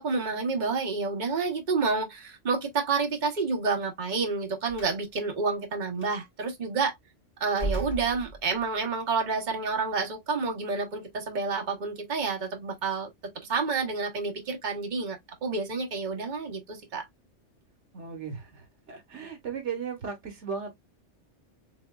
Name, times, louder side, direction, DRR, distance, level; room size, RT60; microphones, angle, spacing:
voice 1, 0.0-6.9 7.4-13.1 13.5-17.1, right 4 dB, 40° right, 1.2 m, -29 dB
Slam, 4.7-5.0 6.0-6.1 7.5-8.8, right 2 dB, 10° left, 1.9 m, -35 dB
voice 2, 17.9-20.7, right 6 dB, 75° right, 1.4 m, -36 dB
4.1 x 3.6 x 2.3 m
omnidirectional pair, 1.2 m